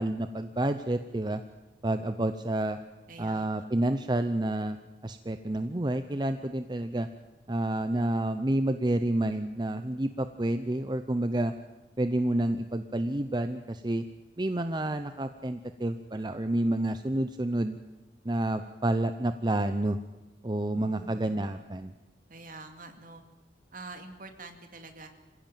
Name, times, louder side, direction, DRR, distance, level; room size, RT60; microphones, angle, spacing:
voice 1, 0.0-1.4 1.8-2.8 3.2-4.8 5.0-7.1 7.5-11.5 12.0-14.0 14.4-17.8 18.2-20.0 20.4-21.9, right 1 dB, 25° right, 9 dB, 0.7 m, -29 dB
voice 2, 3.1-3.7 20.7-21.5 22.3-23.2 23.7-25.1, right 3 dB, 50° right, 6 dB, 2.4 m, -46 dB
26.0 x 16.0 x 9.1 m, 1.1 s
head